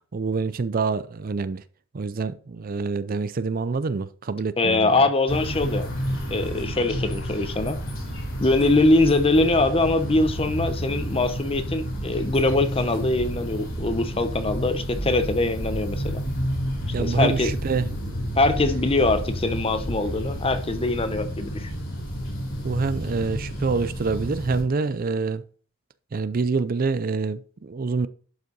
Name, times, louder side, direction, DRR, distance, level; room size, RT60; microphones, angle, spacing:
voice 1, 0.0-1.6 1.9-5.1 16.5-16.6 16.9-17.9 22.6-25.4 26.1-28.1, right 4 dB, 45° right, 0.5 m, -26 dB
voice 2, 4.6-5.9 6.3-7.8 8.4-16.2 17.0-17.5 18.3-21.7, left 2 dB, 25° left, 0.9 m, -22 dB
sound 1, 5.3-24.6, equal, 75° left, 3.9 m, -30 dB
11.5 x 5.6 x 4.0 m
head